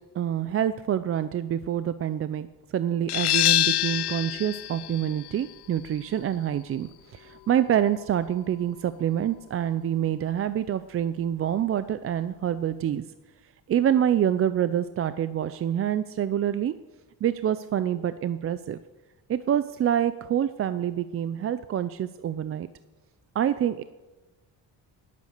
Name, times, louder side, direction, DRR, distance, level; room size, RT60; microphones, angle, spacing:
voice 1, 0.1-2.5 2.7-13.1 13.7-16.7 17.2-18.8 19.3-22.7 23.3-23.8, right 10 dB, 35° right, 13 dB, 0.4 m, -26 dB
sound 1, 3.1-8.5, left 16 dB, 75° left, 0.6 m, -28 dB
20.0 x 8.5 x 6.5 m, 1.2 s
cardioid pair, 175°, 40 cm